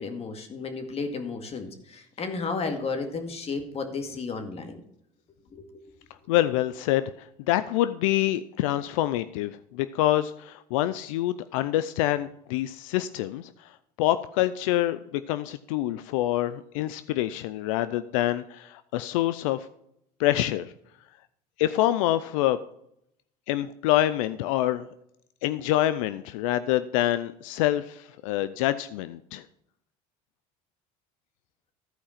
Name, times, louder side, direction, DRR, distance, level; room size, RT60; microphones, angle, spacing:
voice 1, 0.0-4.8 5.5-5.8, left 4 dB, 40° left, 6 dB, 2.2 m, -33 dB
voice 2, 6.3-19.7 20.2-20.7 21.6-22.6 23.5-24.9 25.4-29.4, left 14 dB, 90° left, 13 dB, 0.5 m, -26 dB
14.5 x 4.9 x 5.8 m, 0.75 s
supercardioid pair, 95°, 16 cm